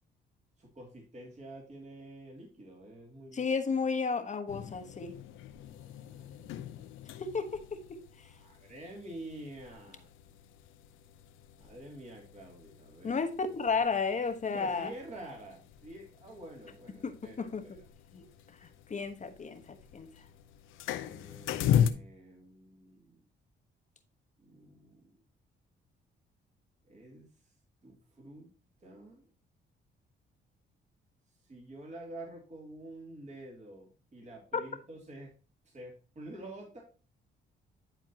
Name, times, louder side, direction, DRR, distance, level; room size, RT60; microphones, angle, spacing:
voice 1, 0.6-3.4 5.7-6.6 8.3-10.1 11.6-13.2 14.5-17.8 20.9-23.2 24.4-25.1 26.8-27.3 27.8-28.5 28.8-29.3 31.4-35.3 35.6-36.8, right 1 dB, 35° right, 2.7 m, -48 dB
voice 2, 3.3-5.2 7.2-8.0 13.0-14.9 17.0-17.6 18.1-18.2 18.6-20.1 34.5-34.6, left 5 dB, 35° left, 1.2 m, -33 dB
sound 1, 4.5-21.9, left 9 dB, 85° left, 0.6 m, -38 dB
10.5 x 4.5 x 2.8 m
cardioid pair, 90°, 20 cm